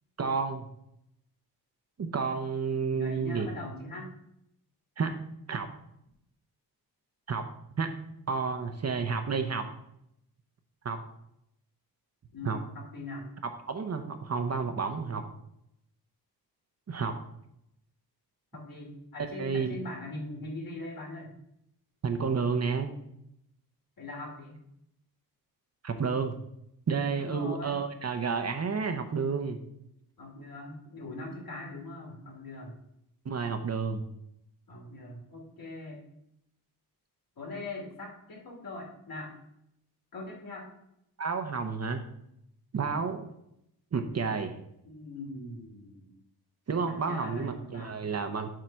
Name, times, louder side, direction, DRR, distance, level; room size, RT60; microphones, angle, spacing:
voice 1, 0.2-0.6 2.0-3.5 5.0-5.2 5.5-5.7 7.3-7.5 7.8-7.9 8.3-9.7 10.8-11.0 12.4-12.6 13.7-15.2 16.9-17.2 19.4-19.8 22.0-22.9 25.8-26.4 26.9-29.6 33.2-34.0 41.2-42.0 42.7-43.3 43.9-44.6 46.7-48.5, right 5 dB, 40° right, 6 dB, 0.8 m, -30 dB
voice 2, 2.9-4.1 12.3-13.3 18.5-21.3 24.0-24.6 27.1-27.8 30.2-32.8 34.7-36.0 37.4-39.3 40.1-40.7 44.8-46.1 46.8-48.1, left 2 dB, 60° left, -2 dB, 2.8 m, -41 dB
7.6 x 3.8 x 5.6 m, 0.77 s
cardioid pair, 100°, 39 cm